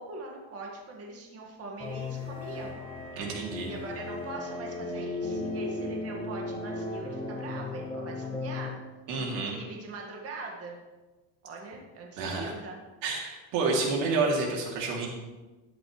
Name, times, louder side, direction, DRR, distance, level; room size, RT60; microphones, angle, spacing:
voice 1, 0.0-2.7 3.6-8.7 9.2-10.8 11.4-12.8, right 2 dB, 30° right, 0 dB, 2.0 m, -42 dB
sound 1, 1.8-8.7, left 2 dB, 10° left, 1.6 m, -36 dB
voice 2, 3.2-3.7 9.1-9.6 12.2-12.5 13.0-15.1, right 3 dB, 80° right, 0 dB, 3.1 m, -29 dB
13.0 x 10.5 x 3.3 m, 1.2 s
cardioid pair, 155°, 48 cm